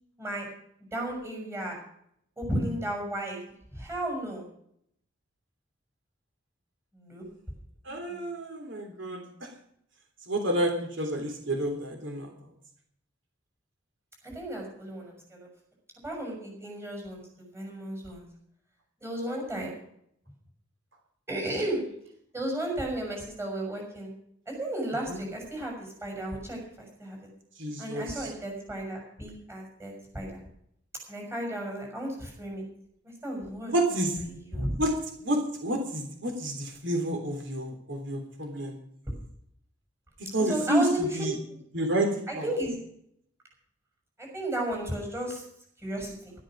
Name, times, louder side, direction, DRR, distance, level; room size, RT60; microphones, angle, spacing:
voice 1, 0.9-1.8 2.4-3.4 3.7-4.4 6.9-7.2 8.1-8.2 14.2-15.5 16.0-18.2 19.0-19.7 21.3-21.8 22.3-24.1 24.5-27.3 27.8-30.4 31.1-32.6 33.2-34.8 40.4-41.0 42.3-42.8 44.2-45.4 45.8-46.3, right 1 dB, 15° right, 1 dB, 6.2 m, -34 dB
voice 2, 7.9-9.5 10.3-12.3 25.1-25.2 27.6-28.3 33.7-34.2 34.8-34.9 35.2-38.8 40.3-41.4 41.7-42.1 42.3-42.5, right 1 dB, 70° right, 3 dB, 3.4 m, -29 dB
13.0 x 12.5 x 6.2 m, 0.67 s
head